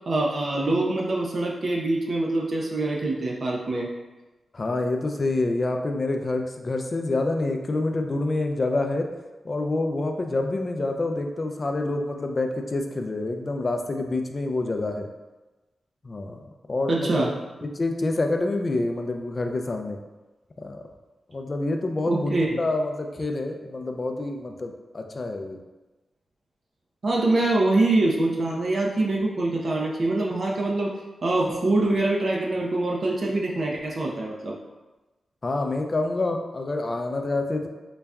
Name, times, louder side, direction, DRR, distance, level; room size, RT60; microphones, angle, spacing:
voice 1, 0.1-3.9 16.9-17.3 22.1-22.6 27.0-30.9 31.2-34.5, right 2 dB, 50° right, -2 dB, 0.5 m, -24 dB
voice 2, 4.5-9.1 9.4-15.1 16.0-16.4 16.7-17.3 17.8-20.0 20.6-20.8 21.3-25.6 35.4-37.7, left 2 dB, 35° left, 4 dB, 0.4 m, -27 dB
3.9 x 2.2 x 3.4 m, 1.1 s
wide cardioid pair, 100°, 0 cm